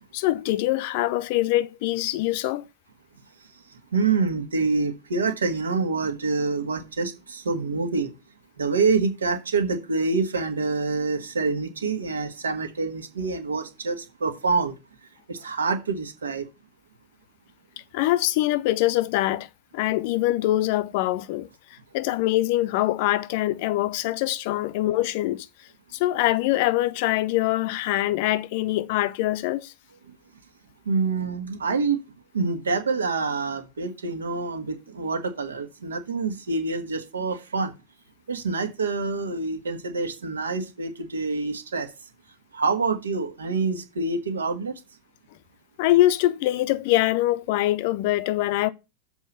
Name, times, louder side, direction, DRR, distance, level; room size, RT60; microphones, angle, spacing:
voice 1, 0.1-2.7 17.9-19.5 19.7-25.5 25.9-29.7 45.8-48.7, left 16 dB, 50° left, 0.6 m, -24 dB
voice 2, 3.9-8.1 8.6-14.7 15.3-16.5 30.8-32.0 32.3-37.7 38.3-41.9 42.5-44.8, right 4 dB, 70° right, 1.5 m, -26 dB
7.2 x 4.6 x 7.0 m
figure-of-eight pair, 90°, 0 cm